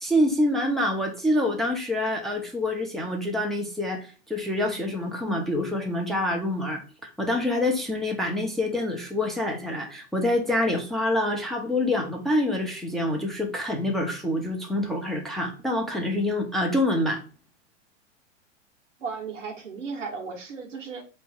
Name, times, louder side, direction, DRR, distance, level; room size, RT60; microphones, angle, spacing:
voice 1, 0.0-17.2, left 1 dB, ahead, 0 dB, 0.7 m, -26 dB
voice 2, 19.0-21.0, right 5 dB, 85° right, 1 dB, 1.5 m, -35 dB
4.1 x 3.1 x 3.5 m, 0.34 s
hypercardioid pair, 115°, 36 cm